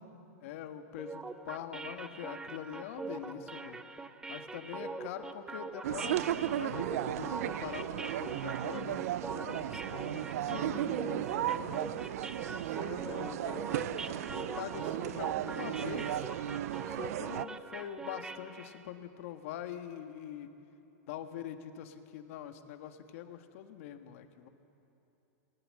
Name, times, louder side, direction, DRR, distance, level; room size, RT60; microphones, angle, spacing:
voice 1, 0.4-3.8 4.3-9.0 12.4-16.2 16.8-20.5 21.1-24.5, left 10 dB, 60° left, 7 dB, 1.5 m, -44 dB
sound 1, 1.0-18.8, right 3 dB, 10° right, 0.6 m, -43 dB
sound 2, 5.8-17.5, right 12 dB, 70° right, 0.5 m, -35 dB
voice 2, 9.3-11.8, left 6 dB, 80° left, 3 dB, 2.6 m, -46 dB
19.5 x 18.0 x 7.6 m, 2.9 s
supercardioid pair, 145°, 8 cm